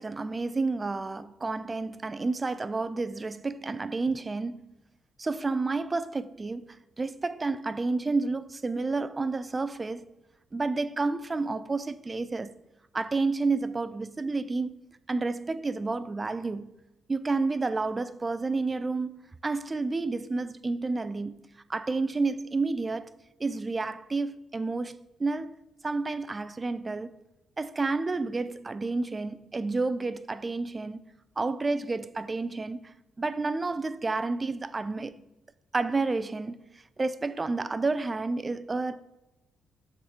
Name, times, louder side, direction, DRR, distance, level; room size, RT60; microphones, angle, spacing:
voice 1, 0.0-4.6 5.2-10.0 10.5-12.6 12.9-14.7 15.1-16.7 17.1-23.1 23.4-25.5 25.8-27.1 27.6-31.0 31.4-32.9 33.2-35.2 35.7-36.6 37.0-39.1, right 3 dB, 25° right, 0.4 m, -30 dB
6.6 x 4.9 x 4.4 m
cardioid pair, 90°, 0 cm